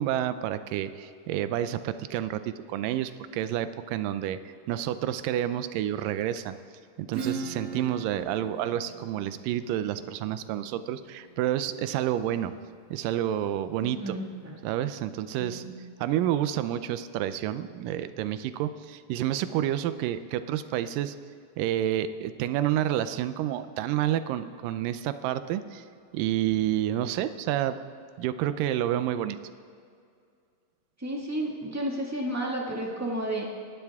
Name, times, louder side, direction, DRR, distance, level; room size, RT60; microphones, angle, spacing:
voice 1, 0.0-6.6 7.0-12.5 12.9-14.2 14.6-15.6 16.0-21.2 21.6-25.8 26.1-27.8 28.2-29.4, right 12 dB, 85° right, 12 dB, 2.3 m, -29 dB
Acoustic guitar / Strum, 7.1-12.5, right 5 dB, 55° right, 1.0 m, -39 dB
voice 2, 13.8-14.6 15.4-15.7 31.0-33.4, right 1 dB, 10° right, -2 dB, 0.8 m, -32 dB
26.5 x 12.0 x 3.6 m, 2.3 s
omnidirectional pair, 3.8 m